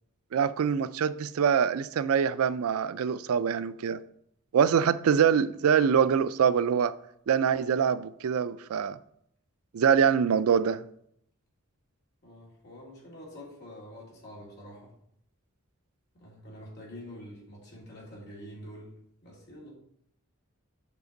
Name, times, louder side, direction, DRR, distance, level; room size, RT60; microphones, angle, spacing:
voice 1, 0.3-4.0 4.5-6.9 7.3-9.0 9.7-10.8, right 7 dB, 80° right, 0.4 m, -24 dB
voice 2, 12.2-14.9 16.1-19.0 19.2-19.7, equal, 50° left, 3.0 m, -46 dB
8.2 x 5.1 x 3.9 m
head